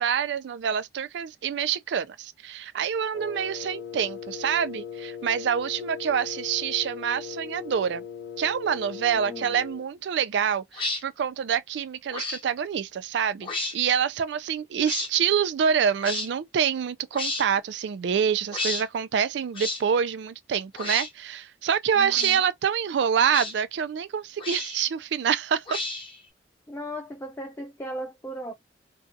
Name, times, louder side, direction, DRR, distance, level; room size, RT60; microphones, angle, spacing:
voice 1, 0.0-8.0 8.4-25.8, right 8 dB, 70° right, 0.3 m, -26 dB
Wind instrument woodwind instrument, 3.1-9.9, left 8 dB, 75° left, 0.6 m, -39 dB
voice 2, 9.1-9.5 21.9-22.4 26.7-28.5, equal, 15° left, 0.3 m, -37 dB
sound 1, 10.7-11.0 12.1-12.4 13.4-13.7 14.8-15.1 16.0-16.3 17.1-17.5 18.5-18.8 19.5-19.8 20.7-21.1 22.1-22.4 23.3-23.5 24.4-24.8 25.7-26.2, left 2 dB, 30° left, 0.9 m, -31 dB
2.6 x 2.3 x 2.4 m
head